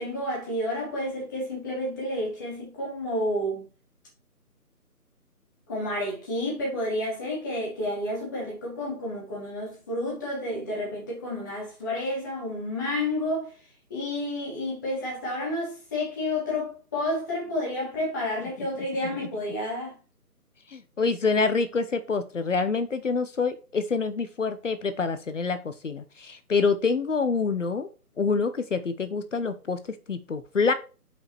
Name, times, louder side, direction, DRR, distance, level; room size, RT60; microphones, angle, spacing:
voice 1, 0.0-3.6 5.7-13.5 13.9-19.9, left 1 dB, 15° left, 1.1 m, -30 dB
voice 2, 20.7-27.9 28.2-29.8 30.1-30.7, left 4 dB, 50° left, 0.8 m, -26 dB
5.6 x 4.9 x 4.5 m
figure-of-eight pair, 155°, 46 cm